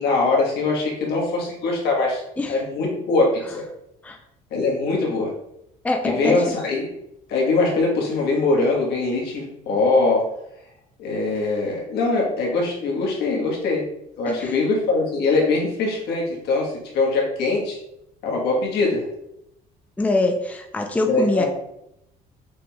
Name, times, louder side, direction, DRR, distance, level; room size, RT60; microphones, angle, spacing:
voice 1, 0.0-2.2 2.5-3.3 3.5-3.6 4.5-5.3 6.0-6.9 7.3-10.2 11.0-13.8 14.2-17.8 18.2-19.1 21.1-21.5, left 3 dB, 80° left, -2 dB, 1.3 m, -22 dB
voice 2, 5.8-6.4 14.3-14.5 20.0-21.5, left 2 dB, 10° left, 3 dB, 0.5 m, -23 dB
6.1 x 3.0 x 2.3 m, 0.81 s
cardioid pair, 110°, 17 cm